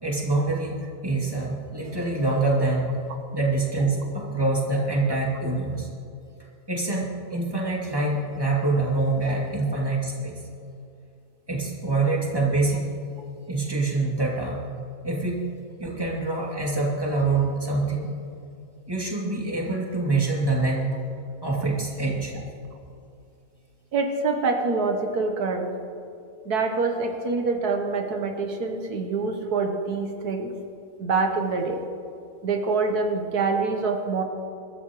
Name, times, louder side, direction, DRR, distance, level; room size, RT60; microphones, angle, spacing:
voice 1, 0.0-2.9 3.3-5.9 6.7-10.4 11.5-12.8 13.5-14.6 15.0-15.4 15.8-18.1 18.9-20.9 21.4-22.4, right 3 dB, 15° right, -3 dB, 2.6 m, -25 dB
voice 2, 23.9-25.7 26.5-30.5 31.0-31.8 32.4-34.2, right 4 dB, 80° right, 4 dB, 1.6 m, -25 dB
23.0 x 13.0 x 3.1 m, 2.5 s
omnidirectional pair, 1.6 m